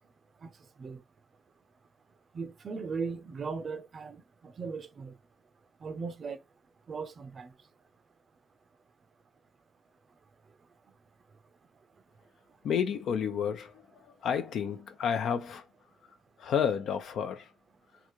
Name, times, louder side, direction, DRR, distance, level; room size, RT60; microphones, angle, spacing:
voice 1, 2.3-4.2 4.6-5.1 5.8-6.4 6.9-7.5, right 5 dB, 45° right, 0.6 m, -37 dB
voice 2, 12.6-13.7 14.2-15.6 16.4-17.5, left 7 dB, 70° left, 0.6 m, -30 dB
3.8 x 2.4 x 3.0 m
cardioid pair, 90°, 0 cm